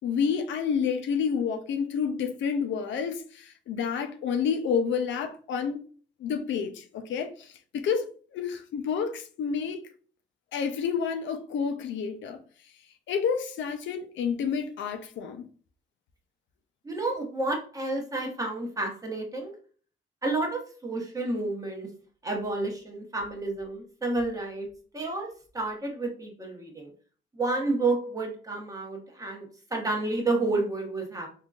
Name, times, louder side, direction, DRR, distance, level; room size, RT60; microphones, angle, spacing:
voice 1, 0.0-5.8 6.2-9.8 10.5-12.4 13.1-15.5, left 6 dB, 70° left, 0.5 m, -29 dB
voice 2, 16.8-19.5 20.2-21.9 22.2-24.7 24.9-25.3 25.5-26.9 27.3-31.3, right 2 dB, 15° right, 1.0 m, -30 dB
3.6 x 2.6 x 2.3 m
cardioid pair, 90°, 20 cm